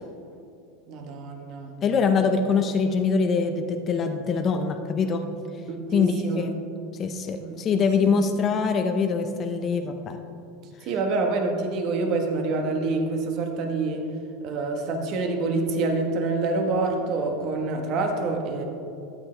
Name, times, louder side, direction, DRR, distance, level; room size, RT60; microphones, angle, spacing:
voice 1, 0.9-1.7 5.7-6.5 7.4-8.1 10.9-14.1 14.4-18.6, right 3 dB, 45° right, 4 dB, 1.3 m, -27 dB
voice 2, 1.8-5.2 5.9-6.5 7.0-10.2, left 5 dB, 25° left, 5 dB, 0.6 m, -24 dB
12.5 x 8.8 x 3.3 m, 2.6 s
supercardioid pair, 150°, 0 cm